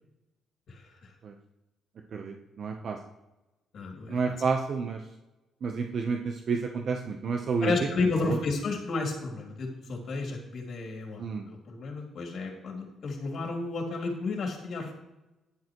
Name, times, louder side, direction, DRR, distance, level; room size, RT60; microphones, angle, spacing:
voice 1, 0.7-1.0 3.7-4.4 7.6-14.9, left 3 dB, 60° left, 1 dB, 2.7 m, -32 dB
voice 2, 2.1-3.0 4.1-5.0 5.6-7.7 8.2-8.4 11.2-11.5, right 5 dB, 55° right, 4 dB, 0.9 m, -30 dB
10.0 x 9.5 x 3.1 m, 0.99 s
cardioid pair, 90°, 0 cm